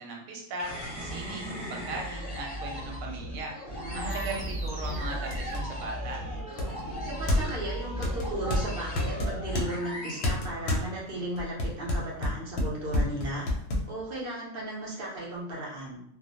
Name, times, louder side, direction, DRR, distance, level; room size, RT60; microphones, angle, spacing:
voice 1, 0.0-3.5 3.9-6.2, right 2 dB, 90° right, 0 dB, 1.1 m, -38 dB
sound 1, 0.6-11.2, equal, 25° left, 0.6 m, -36 dB
voice 2, 3.8-4.4 7.0-13.5 13.9-16.0, right 1 dB, 50° right, -4 dB, 0.8 m, -36 dB
sound 2, 3.9-13.6, right 2 dB, 35° right, 0.4 m, -47 dB
sound 3, 4.2-4.3 4.8-4.9 5.3-5.7 6.6-7.6 8.0-9.7 10.2-10.9 11.4-13.9, left 1 dB, 65° left, 0.7 m, -29 dB
2.4 x 2.0 x 2.7 m, 0.73 s
omnidirectional pair, 1.4 m